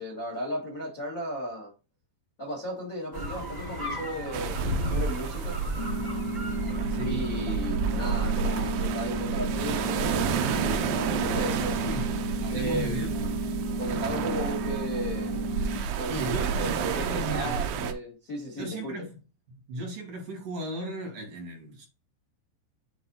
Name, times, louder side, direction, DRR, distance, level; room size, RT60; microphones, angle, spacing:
voice 1, 0.0-1.7 2.4-5.6 7.0-11.8 12.5-13.4 13.8-15.4 15.9-18.9, equal, 80° left, 0.7 m, -35 dB
sound 1, 3.1-7.7, equal, 15° right, 1.3 m, -34 dB
sound 2, 4.3-17.9, right 7 dB, 90° right, 2.0 m, -31 dB
sound 3, 5.8-15.8, right 1 dB, 50° left, 3.5 m, -33 dB
voice 2, 6.9-7.2 11.4-13.1 16.1-17.5 18.6-19.2 19.7-21.9, right 1 dB, 55° right, 2.8 m, -36 dB
8.6 x 3.9 x 4.0 m
omnidirectional pair, 5.4 m